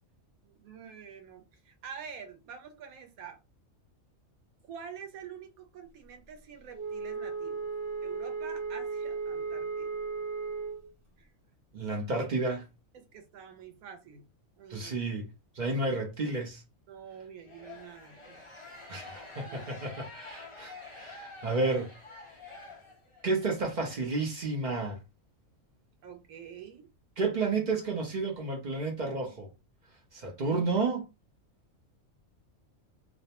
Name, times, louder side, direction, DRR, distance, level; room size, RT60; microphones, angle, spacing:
voice 1, 0.4-3.4 4.6-7.7 8.0-10.0 11.2-11.3 12.9-14.2 14.6-15.0 16.9-18.5 19.5-19.9 26.0-26.9, right 7 dB, 85° right, 1.1 m, -47 dB
Wind instrument woodwind instrument, 6.7-10.9, right 5 dB, 70° right, 1.3 m, -35 dB
voice 2, 11.7-12.7 14.7-15.3 15.6-16.6 18.9-21.9 23.2-25.0 27.2-29.5 30.1-31.0, right 3 dB, 50° right, 0.5 m, -31 dB
sound 1, 17.4-23.3, left 3 dB, 35° left, 0.5 m, -47 dB
2.6 x 2.1 x 2.8 m
omnidirectional pair, 1.5 m